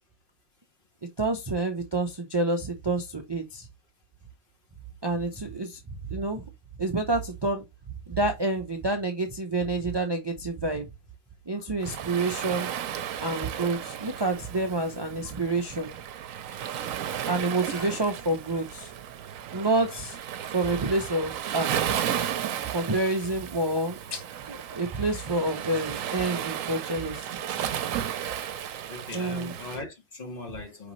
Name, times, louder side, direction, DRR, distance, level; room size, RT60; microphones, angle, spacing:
voice 1, 1.2-3.7 5.0-5.8 6.1-6.4 6.8-7.6 8.1-10.9 11.5-12.7 13.2-15.9 17.2-18.9 19.5-20.2 20.5-21.8 22.7-24.2 24.5-27.3 29.1-29.5, right 2 dB, 30° right, 0.4 m, -28 dB
Waves surf, 11.8-29.8, right 10 dB, 80° right, 1.0 m, -34 dB
voice 2, 28.9-30.9, left 2 dB, 40° left, 1.4 m, -39 dB
5.2 x 3.4 x 3.0 m
omnidirectional pair, 1.4 m